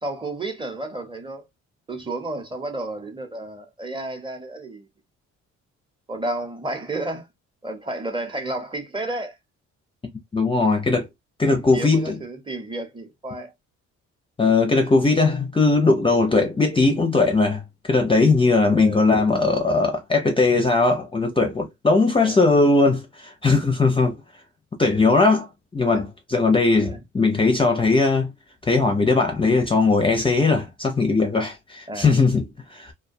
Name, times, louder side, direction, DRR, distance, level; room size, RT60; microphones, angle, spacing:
voice 1, 0.0-1.4 1.9-4.9 6.1-7.3 7.6-9.4 11.4-13.5 14.4-14.6 18.7-19.0 22.2-22.4 25.9-26.0 26.8-27.0 31.9-32.1, right 2 dB, 15° right, 0.7 m, -31 dB
voice 2, 10.3-11.1 11.4-12.2 14.4-24.2 24.8-25.5 25.7-28.3 28.7-32.4 32.7-32.9, left 3 dB, 15° left, 0.5 m, -19 dB
2.2 x 2.1 x 2.5 m
cardioid pair, 90°, 30 cm